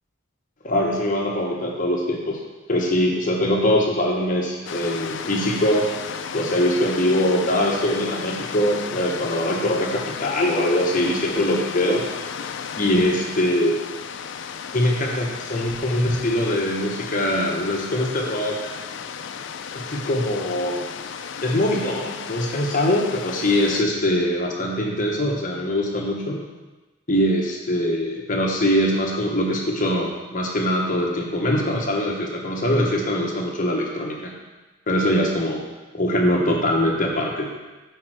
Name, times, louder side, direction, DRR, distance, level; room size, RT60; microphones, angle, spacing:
voice 1, 0.6-2.4 2.7-5.9 6.3-12.1 12.8-13.7 14.7-18.7 19.7-20.9 21.4-26.4 27.1-34.3 34.9-35.6 35.9-37.5, left 1 dB, 40° left, -1 dB, 1.1 m, -22 dB
sound 1, 4.7-23.8, left 7 dB, 55° left, 0.4 m, -34 dB
8.3 x 4.4 x 4.8 m, 1.2 s
head